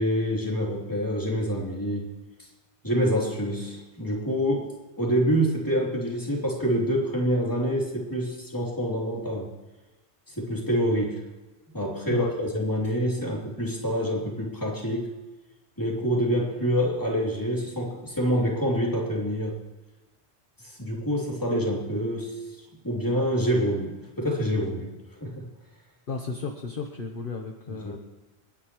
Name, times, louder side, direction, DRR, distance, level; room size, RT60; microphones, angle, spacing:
voice 1, 0.0-2.2 2.8-4.7 5.0-9.5 10.3-11.2 11.7-15.1 15.8-19.6 20.6-22.3 22.8-24.9 25.2-25.5 27.7-28.0, equal, 15° left, -3 dB, 3.2 m, -26 dB
voice 2, 26.1-28.0, left 4 dB, 50° left, 2 dB, 1.3 m, -34 dB
29.5 x 10.0 x 3.1 m, 1.2 s
omnidirectional pair, 1.2 m